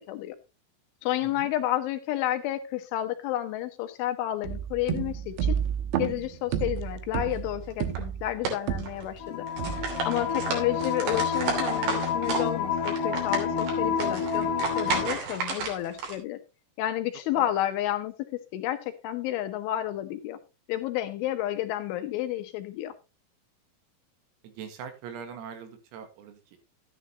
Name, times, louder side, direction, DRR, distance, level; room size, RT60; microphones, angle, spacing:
voice 1, 1.0-5.6 5.9-9.5 10.0-14.5 14.8-16.4 16.8-18.1 18.5-20.4 20.7-22.9, left 13 dB, 75° left, 3.2 m, -30 dB
sound 1, 4.4-9.2 9.6-10.2, right 9 dB, 75° right, 2.7 m, -31 dB
sound 2, 7.7-8.0 8.4-9.2 9.5-12.5 12.8-16.1, right 5 dB, 55° right, 4.6 m, -32 dB
sound 3, 9.2-15.1, left 6 dB, 60° left, 2.4 m, -29 dB
voice 2, 10.1-10.5 17.3-17.6 24.4-26.6, right 7 dB, 90° right, 4.4 m, -42 dB
12.5 x 10.5 x 2.8 m
omnidirectional pair, 5.9 m